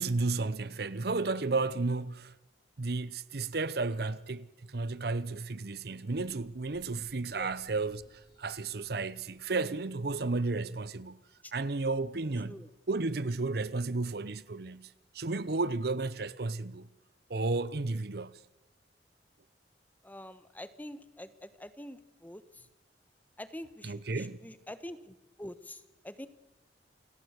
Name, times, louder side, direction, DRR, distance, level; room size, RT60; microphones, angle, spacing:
voice 1, 0.0-2.3 2.8-11.2 11.5-12.6 12.9-16.9 17.3-18.4 23.8-24.4, right 3 dB, 60° right, 0.8 m, -33 dB
sound 1, 6.1-10.0, equal, 25° left, 4.2 m, -62 dB
voice 2, 20.0-22.7 23.4-26.3, left 1 dB, 10° left, 1.2 m, -46 dB
28.5 x 17.5 x 8.1 m
head